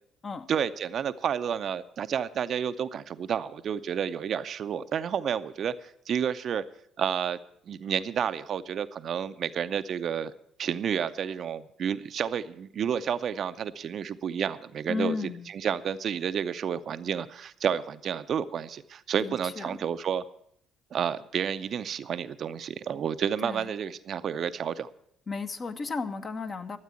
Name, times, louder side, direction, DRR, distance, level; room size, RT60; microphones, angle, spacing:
voice 1, 0.5-6.6 7.0-7.4 7.7-10.3 10.6-15.2 15.5-20.2 20.9-24.9, right 8 dB, 50° right, 12 dB, 0.6 m, -30 dB
voice 2, 14.9-15.5 19.2-19.8 23.4-23.7 25.3-26.8, left 4 dB, 40° left, 8 dB, 1.1 m, -34 dB
13.0 x 8.2 x 8.3 m, 0.70 s
hypercardioid pair, 50°, 0 cm